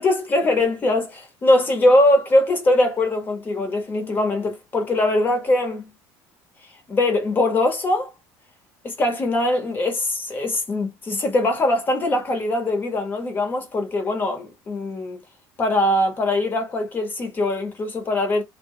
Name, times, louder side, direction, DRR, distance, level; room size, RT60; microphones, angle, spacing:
voice 1, 0.0-5.9 6.9-8.1 8.8-15.2 15.6-18.4, left 1 dB, 25° left, 1.0 m, -21 dB
2.3 x 2.1 x 3.7 m
cardioid pair, 135°, 8 cm